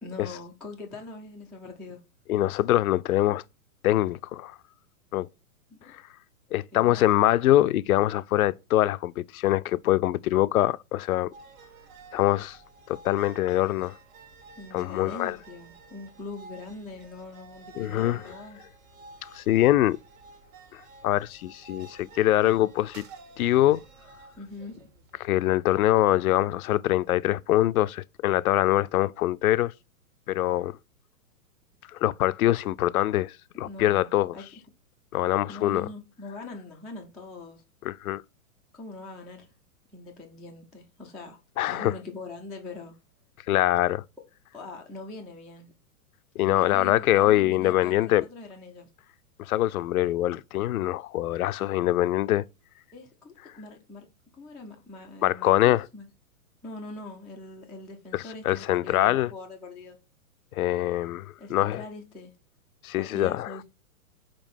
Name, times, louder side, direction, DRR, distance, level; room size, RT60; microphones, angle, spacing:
voice 1, 0.0-2.0 5.7-5.9 6.7-7.0 14.6-18.6 24.4-24.9 33.6-34.5 35.5-37.6 38.7-39.5 39.9-41.4 41.7-43.0 44.5-45.7 46.5-48.9 52.9-54.0 54.3-56.1 56.6-60.0 61.4-62.3 63.0-63.6, left 3 dB, ahead, 0.4 m, -42 dB
voice 2, 2.3-3.4 3.8-4.6 5.1-5.3 5.9-6.0 6.5-11.3 12.1-12.6 12.9-13.9 14.7-15.4 17.8-18.2 19.2-20.0 20.7-23.0 23.4-23.8 25.2-29.7 30.3-30.8 31.9-34.3 35.1-35.9 37.8-38.2 41.6-41.9 43.5-44.0 46.4-48.2 49.4-52.4 55.2-55.9 58.1-59.3 60.5-61.8 62.8-63.5, left 14 dB, 70° left, 0.6 m, -24 dB
sound 1, 11.3-25.3, right 4 dB, 60° right, 1.7 m, -51 dB
5.2 x 4.3 x 5.7 m
hypercardioid pair, 130°, 45 cm